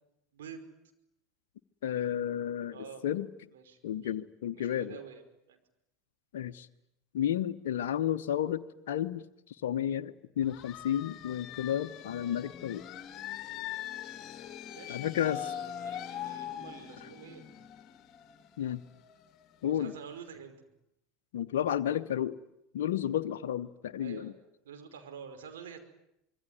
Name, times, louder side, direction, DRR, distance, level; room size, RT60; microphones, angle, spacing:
voice 1, 1.8-2.8 3.0-3.3 3.8-5.0 6.3-6.7 7.1-12.8 14.9-15.5 18.6-18.8 19.6-19.9 21.3-22.4 22.7-24.3, left 10 dB, 65° left, 7 dB, 1.0 m, -32 dB
voice 2, 2.7-3.1 3.5-3.8 4.5-5.2 5.5-5.6 14.7-17.5 19.6-20.7 24.0-25.8, right 7 dB, 70° right, 6 dB, 5.3 m, -48 dB
sound 1, 10.4-19.9, left 10 dB, 45° left, 1.9 m, -42 dB
26.0 x 23.0 x 9.6 m, 0.82 s
figure-of-eight pair, 75°, 0 cm